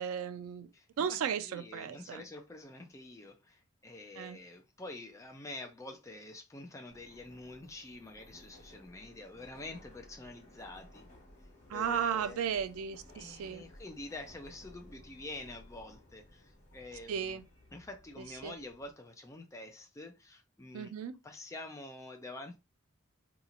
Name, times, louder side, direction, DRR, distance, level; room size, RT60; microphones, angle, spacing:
voice 1, 0.0-0.7 1.0-2.2 4.2-4.4 11.7-13.7 17.1-17.4 18.4-18.5 20.7-21.1, right 8 dB, 90° right, 0.3 m, -35 dB
voice 2, 0.7-1.2 1.4-11.0 11.7-12.4 13.1-17.4 17.7-20.9 21.2-22.6, left 2 dB, 15° left, 0.4 m, -47 dB
Subway metro underground, 6.9-18.9, left 1 dB, 35° left, 1.6 m, -57 dB
3.9 x 2.9 x 2.4 m
head